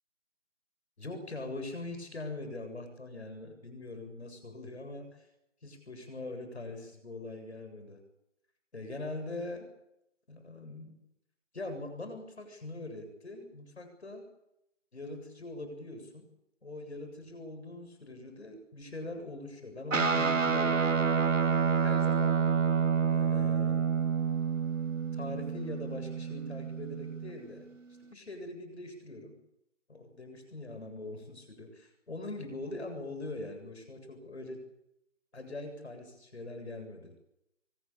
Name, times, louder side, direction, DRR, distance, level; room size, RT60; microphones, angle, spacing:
voice 1, 1.0-5.1 5.6-8.0 8.7-9.7 10.3-11.0 11.5-14.3 14.9-16.3 16.6-21.2 21.7-22.5 23.1-23.8 25.1-27.7 28.1-29.4 29.9-34.6 35.3-37.2, left 2 dB, 60° left, 7 dB, 7.5 m, -42 dB
Guitar, 19.9-27.5, right 6 dB, 85° right, 1.7 m, -28 dB
24.5 x 18.5 x 8.8 m, 0.83 s
figure-of-eight pair, 170°, 38 cm